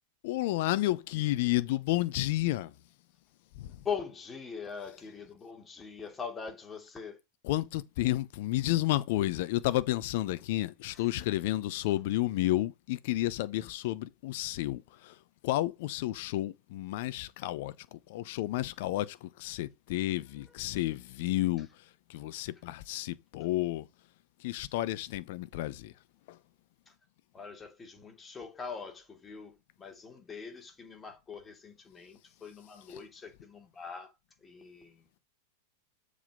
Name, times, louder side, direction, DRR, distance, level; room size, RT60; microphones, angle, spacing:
voice 1, 0.2-2.7 3.6-3.7 7.4-15.1 15.4-21.7 22.1-23.8 24.4-25.9, left 16 dB, 55° left, 0.8 m, -31 dB
voice 2, 3.8-7.2 10.9-11.0 20.5-20.6 27.3-34.1 34.4-35.1, left 6 dB, 20° left, 3.1 m, -42 dB
7.4 x 4.9 x 5.2 m
figure-of-eight pair, 95°, 0 cm